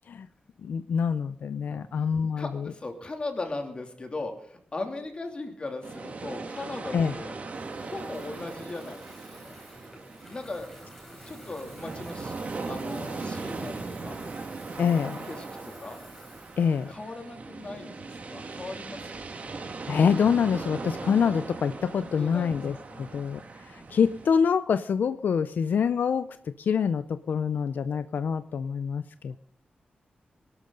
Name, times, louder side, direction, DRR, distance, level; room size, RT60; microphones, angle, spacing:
voice 1, 0.6-2.7 6.9-7.1 14.8-15.2 16.6-16.9 19.9-29.4, left 6 dB, 80° left, 12 dB, 0.5 m, -26 dB
voice 2, 1.7-2.0 2.4-7.3 7.7-9.5 10.3-10.7 11.3-12.4 12.7-14.2 14.8-16.0 16.9-19.3 22.2-23.2, left 2 dB, 35° left, 4 dB, 2.8 m, -38 dB
sound 1, 5.8-24.3, right 3 dB, 50° right, 2.0 m, -39 dB
Water tap faucet / Fill (with liquid), 7.5-17.7, left 1 dB, 10° left, 3.9 m, -51 dB
22.5 x 12.0 x 3.9 m, 0.63 s
wide cardioid pair, 130°, 3 cm